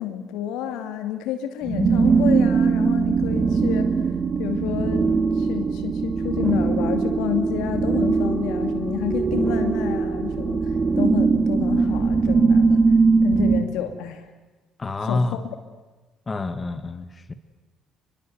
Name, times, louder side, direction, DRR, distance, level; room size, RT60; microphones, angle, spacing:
voice 1, 0.0-3.9 4.4-10.7 11.0-12.8 13.2-14.3 15.0-15.4, left 10 dB, 70° left, 8 dB, 2.4 m, -29 dB
sound 1, 1.6-13.6, right 4 dB, 35° right, 2.4 m, -21 dB
voice 2, 14.8-15.4 16.3-17.3, left 3 dB, 30° left, 10 dB, 2.1 m, -27 dB
30.0 x 22.0 x 8.1 m, 1.2 s
hypercardioid pair, 50°, 0 cm